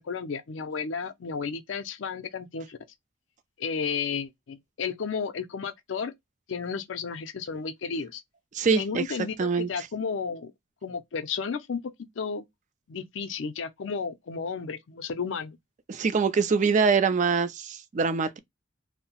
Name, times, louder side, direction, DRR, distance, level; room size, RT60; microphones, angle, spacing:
voice 1, 0.0-2.8 3.6-6.1 6.5-8.2 8.8-10.5 10.8-11.8 12.2-12.4 12.9-15.6, left 5 dB, 75° left, 0.5 m, -33 dB
voice 2, 8.5-9.0 9.4-9.7 15.9-18.4, right 5 dB, 40° right, 0.4 m, -24 dB
2.7 x 2.0 x 2.8 m
head